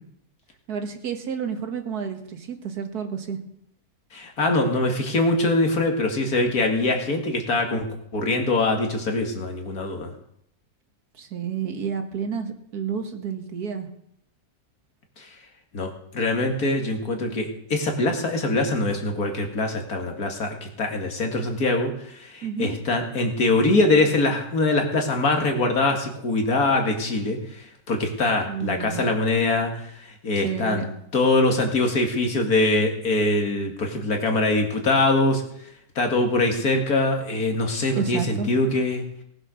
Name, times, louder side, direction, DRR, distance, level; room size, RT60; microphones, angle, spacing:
voice 1, 0.7-3.4 11.1-13.9 22.4-22.7 28.5-29.1 30.4-30.8 37.9-38.5, right 7 dB, 85° right, 6 dB, 2.0 m, -30 dB
voice 2, 4.1-7.9 8.1-10.1 15.2-15.4 15.7-30.8 31.1-35.4 36.0-39.0, left 2 dB, 75° left, 3 dB, 2.4 m, -23 dB
18.5 x 7.7 x 6.3 m, 0.76 s
omnidirectional pair, 1.6 m